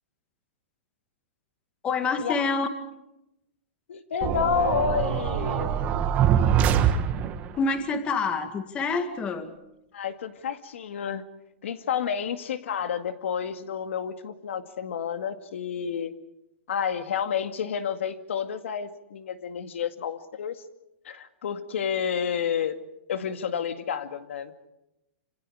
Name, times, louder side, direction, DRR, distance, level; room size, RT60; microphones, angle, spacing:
voice 1, 1.8-2.7 7.5-9.5, left 4 dB, 15° left, 8 dB, 1.9 m, -27 dB
voice 2, 3.9-5.7 9.9-11.2 11.6-16.1 16.7-20.6 21.0-22.8 23.1-24.7, left 8 dB, 80° left, 9 dB, 2.0 m, -30 dB
sound 1, 4.2-7.6, right 9 dB, 25° right, 1.5 m, -24 dB
27.0 x 26.5 x 4.9 m, 0.89 s
hypercardioid pair, 165°, 7 cm